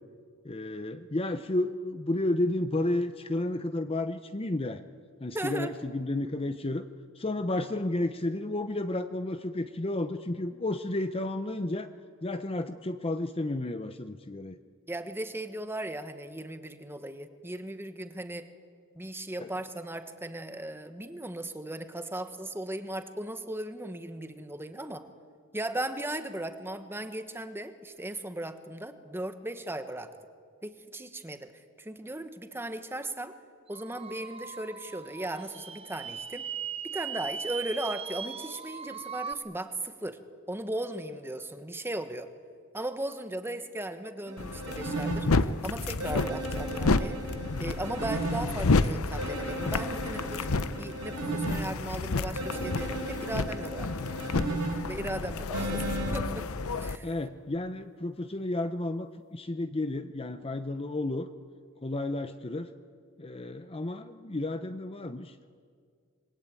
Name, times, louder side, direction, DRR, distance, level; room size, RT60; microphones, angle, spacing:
voice 1, 0.4-4.8 5.2-6.8 7.2-11.9 12.2-14.6 19.4-19.5 57.0-61.3 61.8-62.7 63.2-65.4, left 2 dB, 25° left, 10 dB, 0.7 m, -32 dB
voice 2, 5.3-5.7 14.9-18.5 18.9-25.0 25.5-30.1 30.6-31.5 31.8-33.3 33.7-36.4 36.8-40.2 40.5-42.3 42.7-47.2 47.6-50.5 50.8-53.9 54.9-56.5 56.8-57.1, right 1 dB, 10° right, 8 dB, 1.3 m, -37 dB
sound 1, 33.7-39.3, right 7 dB, 25° right, 0.7 m, -39 dB
sound 2, 44.3-45.2 46.0-48.4 49.2-51.6 52.4-54.7 55.5-56.1, right 2 dB, 80° right, 5.4 m, -35 dB
sound 3, 44.4-57.0, left 3 dB, 70° left, 0.8 m, -30 dB
26.5 x 22.0 x 9.0 m, 2.1 s
head